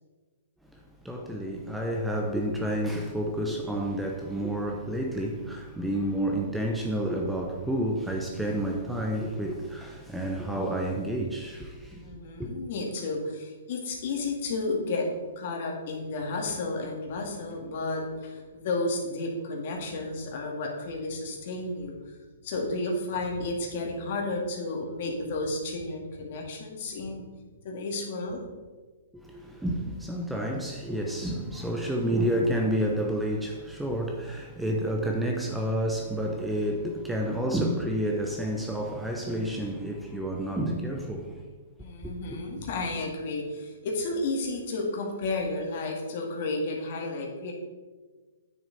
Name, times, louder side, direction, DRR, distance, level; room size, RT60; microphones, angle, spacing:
voice 1, 1.0-12.0 12.4-12.5 29.1-41.5 42.0-42.4, right 1 dB, 5° right, 0.7 m, -30 dB
voice 2, 12.0-15.1 15.4-22.0 22.4-27.2 27.6-28.4 41.8-47.5, left 2 dB, 50° left, 2.2 m, -32 dB
9.1 x 6.5 x 4.1 m
hypercardioid pair, 145°, 0 cm